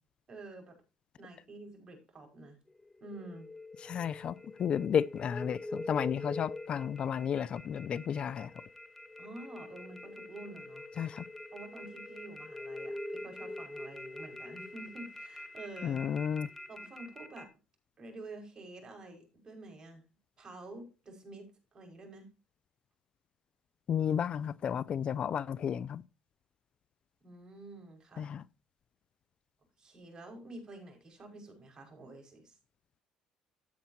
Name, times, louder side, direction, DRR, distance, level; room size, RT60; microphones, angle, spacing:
voice 1, 0.3-0.8 1.2-2.6 3.0-3.5 9.2-10.9 11.5-16.0 16.7-17.5 18.0-20.0 20.4-22.3 27.2-28.3 29.8-32.6, right 2 dB, 35° right, 5.4 m, -49 dB
sound 1, 2.7-17.5, left 1 dB, 15° left, 1.5 m, -45 dB
voice 2, 3.8-8.5 11.0-11.2 15.8-16.5 23.9-26.0 28.2-28.4, left 8 dB, 50° left, 0.4 m, -32 dB
13.5 x 8.4 x 2.8 m
supercardioid pair, 80°, 2 cm